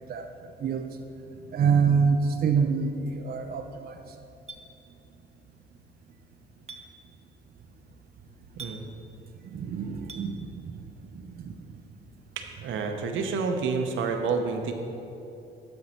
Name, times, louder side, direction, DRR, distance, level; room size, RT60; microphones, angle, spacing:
voice 1, 1.5-4.0 9.5-10.7 11.1-11.3, right 5 dB, 50° right, 5 dB, 0.5 m, -26 dB
Chink clink, 4.5-4.6 6.7-6.8 8.6-8.8 10.1-10.3, right 4 dB, 30° right, 0.9 m, -41 dB
voice 2, 12.4-14.7, right 5 dB, 80° right, 5 dB, 0.9 m, -29 dB
12.0 x 5.6 x 4.3 m, 2.8 s
cardioid pair, 90°, 20 cm